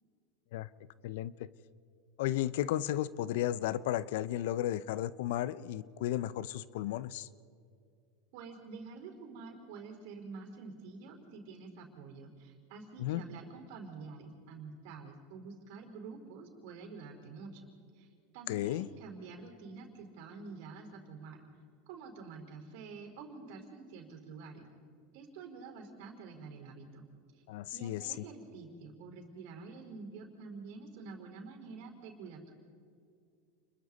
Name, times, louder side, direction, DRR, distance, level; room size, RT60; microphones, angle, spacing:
voice 1, 2.2-7.3 13.0-13.2 18.5-18.9 27.5-28.0, left 13 dB, 70° left, 18 dB, 0.6 m, -34 dB
voice 2, 8.3-17.7 17.9-18.1 18.3-21.4 21.9-24.7 25.1-27.0 27.7-32.5, right 4 dB, 65° right, 3 dB, 4.6 m, -48 dB
30.0 x 22.0 x 4.2 m, 2.3 s
hypercardioid pair, 100°, 0 cm